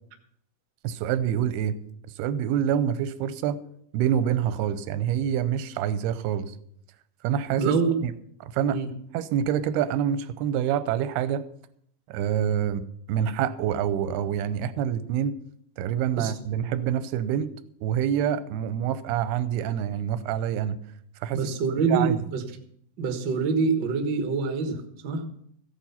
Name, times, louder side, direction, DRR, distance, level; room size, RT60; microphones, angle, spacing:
voice 1, 0.8-1.8 2.2-3.6 3.9-6.5 7.2-8.1 8.4-8.8 9.1-11.4 12.1-15.4 15.8-17.5 17.8-20.8 21.2-21.5 21.9-22.2, right 9 dB, 90° right, 13 dB, 2.7 m, -26 dB
voice 2, 7.6-7.9 8.7-8.9 16.2-16.3 21.3-22.4 23.0-25.2, right 4 dB, 70° right, 6 dB, 1.0 m, -25 dB
15.0 x 9.0 x 5.7 m, 0.68 s
omnidirectional pair, 4.5 m